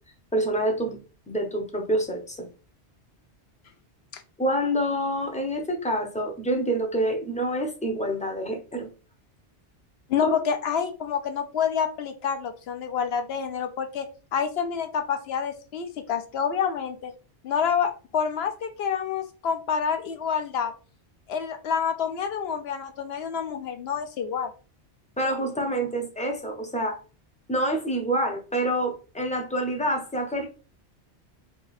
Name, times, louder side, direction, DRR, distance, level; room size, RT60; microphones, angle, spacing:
voice 1, 0.3-1.0 1.3-2.5 4.4-8.9 10.2-10.3 25.2-27.0 27.5-30.5, right 1 dB, 10° left, 2 dB, 0.4 m, -27 dB
voice 2, 10.1-14.1 14.3-17.1 17.4-20.7 21.3-24.5, left 7 dB, 70° left, 7 dB, 0.8 m, -28 dB
2.7 x 2.4 x 3.9 m, 0.34 s
omnidirectional pair, 1.2 m